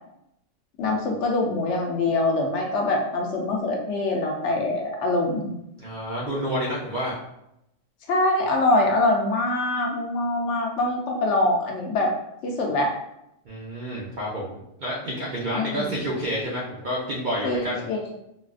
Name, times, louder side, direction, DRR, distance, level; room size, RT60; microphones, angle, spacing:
voice 1, 0.8-5.5 8.1-12.1 12.4-12.9 15.5-15.9 17.4-18.1, left 2 dB, 70° left, 0 dB, 0.8 m, -24 dB
voice 2, 5.8-7.2 13.5-17.8, equal, 55° right, -5 dB, 0.6 m, -29 dB
3.9 x 2.1 x 2.4 m, 0.80 s
omnidirectional pair, 1.4 m